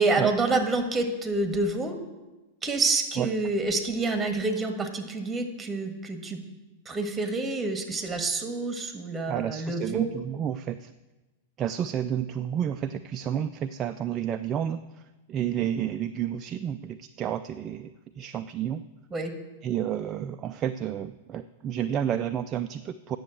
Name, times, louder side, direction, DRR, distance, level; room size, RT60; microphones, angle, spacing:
voice 1, 0.0-2.0 2.6-6.4 6.8-10.1 19.1-19.3, right 3 dB, 15° right, 6 dB, 1.7 m, -27 dB
voice 2, 9.3-10.9 11.6-15.0 15.3-17.9 18.2-18.8 19.6-23.2, right 10 dB, 35° right, 9 dB, 0.4 m, -30 dB
9.3 x 7.1 x 7.7 m, 1.1 s
hypercardioid pair, 100°, 0 cm